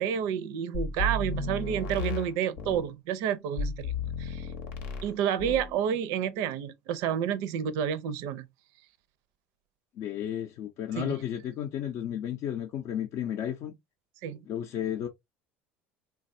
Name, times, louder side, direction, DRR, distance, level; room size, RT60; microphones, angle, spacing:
voice 1, 0.0-3.9 4.2-4.5 5.0-8.5 11.0-11.2 14.2-14.4, right 9 dB, 65° right, 0.5 m, -30 dB
sound 1, 0.7-2.9 3.6-5.1 5.4-5.7, left 2 dB, 75° left, 0.8 m, -33 dB
voice 2, 10.0-13.8 14.5-15.1, left 10 dB, 55° left, 0.4 m, -33 dB
3.2 x 2.3 x 2.6 m
hypercardioid pair, 85°, 6 cm